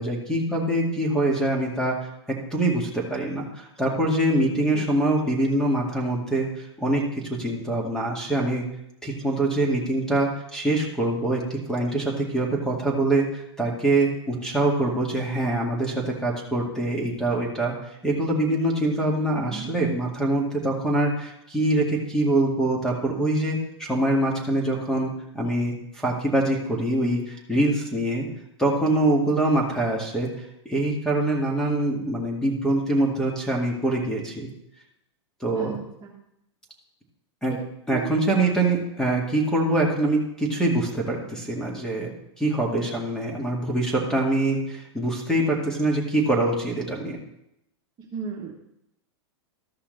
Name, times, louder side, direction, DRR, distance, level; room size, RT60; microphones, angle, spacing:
voice 1, 0.0-2.0 2.3-8.7 9.0-17.7 18.0-28.3 28.6-30.3 30.7-34.5 35.4-35.8 37.4-37.5 37.9-47.2, right 2 dB, 5° left, -1 dB, 2.1 m, -24 dB
voice 2, 35.5-36.1 37.9-38.1 48.1-48.6, right 6 dB, 30° right, -2 dB, 1.7 m, -35 dB
13.5 x 5.6 x 4.0 m, 0.80 s
hypercardioid pair, 120°, 15 cm